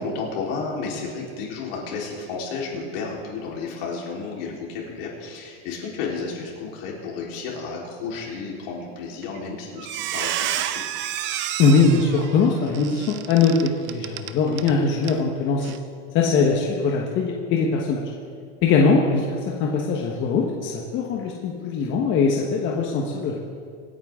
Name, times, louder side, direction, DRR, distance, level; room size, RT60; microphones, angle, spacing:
voice 1, 0.0-10.8, left 4 dB, 70° left, -3 dB, 4.1 m, -32 dB
Squeak, 9.2-9.5 9.8-14.7 15.0-15.2 15.6-15.8, right 11 dB, 40° right, 0.6 m, -30 dB
voice 2, 11.6-15.7 16.1-18.0 18.6-19.3 19.6-23.4, left 4 dB, 40° left, -1 dB, 1.3 m, -21 dB
25.5 x 9.5 x 3.8 m, 2.1 s
supercardioid pair, 160°, 30 cm